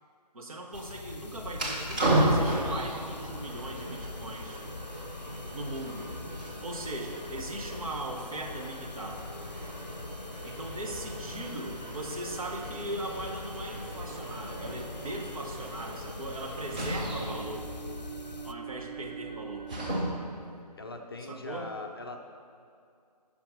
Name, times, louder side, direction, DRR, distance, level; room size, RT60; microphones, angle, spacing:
voice 1, 0.3-4.6 5.5-6.1 6.6-9.3 10.4-17.7 18.4-20.1 21.3-21.7, right 1 dB, 55° right, 1 dB, 1.3 m, -39 dB
sound 1, 0.7-18.5, left 3 dB, 75° left, 0.6 m, -44 dB
sound 2, 1.5-20.4, right 1 dB, 10° right, 0.6 m, -35 dB
voice 2, 20.8-22.2, left 2 dB, 35° left, 4 dB, 0.6 m, -40 dB
9.8 x 5.8 x 5.3 m, 2.4 s
figure-of-eight pair, 150°, 21 cm